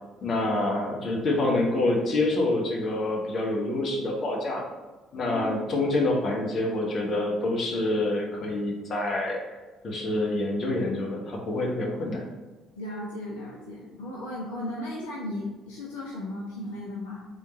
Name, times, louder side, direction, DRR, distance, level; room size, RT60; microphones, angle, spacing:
voice 1, 0.2-4.6 5.1-9.4 9.8-12.2, left 2 dB, 45° left, -2 dB, 1.1 m, -27 dB
voice 2, 5.3-5.6 12.7-17.2, left 1 dB, 70° left, -5 dB, 0.6 m, -36 dB
3.7 x 3.1 x 4.0 m, 1.2 s
figure-of-eight pair, 50°, 0 cm